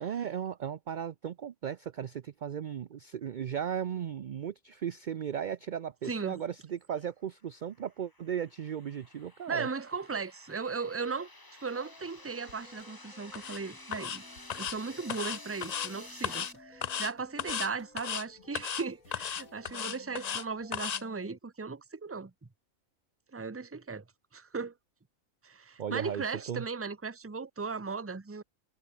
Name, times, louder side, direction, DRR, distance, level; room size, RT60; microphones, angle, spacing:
voice 1, 0.0-9.7 25.8-26.7, right 8 dB, 60° right, 0.5 m, -36 dB
voice 2, 6.0-6.4 9.5-11.3 11.6-14.2 14.6-22.3 23.3-24.0 24.3-24.7 25.4-28.4, right 4 dB, 15° right, 0.6 m, -37 dB
sound 1, 7.6-16.5, left 2 dB, 15° left, 1.7 m, -51 dB
sound 2, 11.7-21.4, left 2 dB, 85° left, 7.7 m, -56 dB
sound 3, 13.3-13.6 13.9-14.2 14.5-14.8 15.1-15.9 16.2-16.5 16.8-17.1 17.4-17.7 18.0-18.2 18.5-18.8 19.1-20.4 20.7-21.0, left 8 dB, 55° left, 0.4 m, -35 dB
omnidirectional pair, 1.4 m